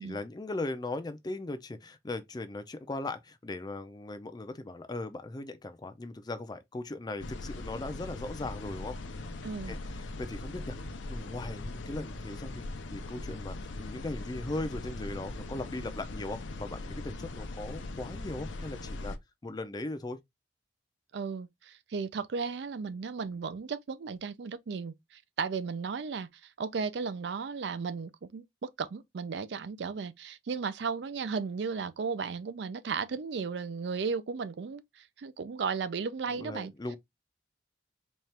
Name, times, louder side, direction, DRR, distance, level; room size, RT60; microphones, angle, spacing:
voice 1, 0.0-9.0 9.7-19.2 19.4-20.2 36.3-37.0, left 2 dB, 20° left, 0.4 m, -39 dB
sound 1, 7.2-19.2, left 2 dB, 85° left, 0.6 m, -40 dB
voice 2, 9.4-9.7 21.1-36.7, right 5 dB, 65° right, 0.4 m, -35 dB
4.2 x 2.4 x 3.2 m
head